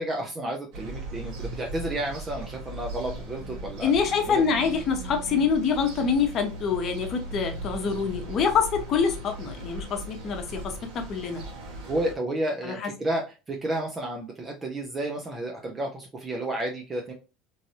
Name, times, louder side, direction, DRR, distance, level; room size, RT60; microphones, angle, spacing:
voice 1, 0.0-3.9 4.3-4.4 11.9-17.1, right 1 dB, 25° right, 1 dB, 0.7 m, -31 dB
sound 1, 0.7-12.1, right 2 dB, 65° right, 1.3 m, -38 dB
voice 2, 3.8-11.4 12.6-12.9, left 6 dB, 45° left, 5 dB, 0.9 m, -26 dB
3.1 x 2.6 x 2.7 m, 0.31 s
hypercardioid pair, 85°, 0 cm